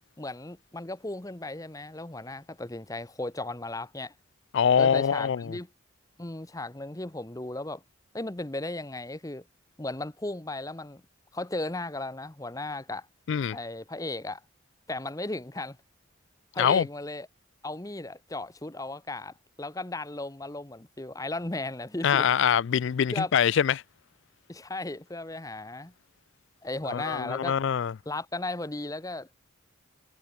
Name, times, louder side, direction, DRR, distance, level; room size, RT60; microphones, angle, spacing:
voice 1, 0.2-4.1 4.8-5.7 6.2-7.8 8.1-9.4 9.8-11.0 11.3-13.1 13.5-14.4 14.9-15.8 16.5-17.3 17.6-22.3 23.1-23.3 24.5-25.9 26.6-27.5 28.1-29.3, left 2 dB, 15° left, 0.9 m, -35 dB
voice 2, 4.5-5.6 13.3-13.6 16.6-16.9 22.0-23.8 26.9-27.9, left 8 dB, 60° left, 0.3 m, -24 dB
head